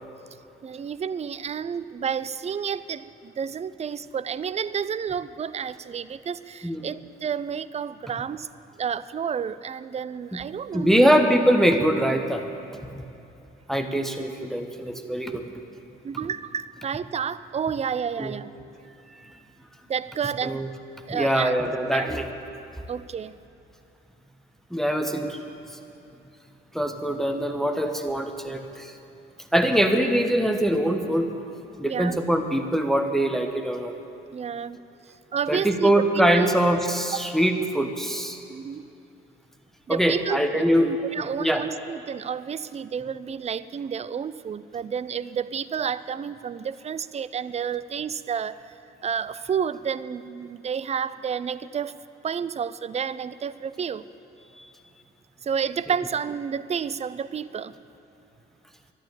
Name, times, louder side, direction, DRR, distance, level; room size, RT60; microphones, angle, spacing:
voice 1, 0.6-8.5 8.8-11.1 16.0-18.5 19.9-20.6 21.1-21.5 21.9-22.1 22.9-23.3 31.8-32.2 34.3-34.8 35.3-35.9 36.3-36.8 37.1-37.2 38.5-38.8 39.9-48.7 49.0-51.9 52.2-54.0 55.4-57.7, right 7 dB, 20° right, 16 dB, 0.5 m, -30 dB
voice 2, 10.7-12.5 12.9-13.0 13.7-15.4 18.2-18.3 19.2-19.4 20.4-20.7 21.1-22.3 24.7-25.4 25.7-25.8 26.7-29.0 29.5-31.3 31.8-33.9 35.5-38.4 39.9-41.6 54.5-54.7, equal, ahead, 5 dB, 1.1 m, -23 dB
12.5 x 11.5 x 8.6 m, 2.7 s
figure-of-eight pair, 45°, 30 cm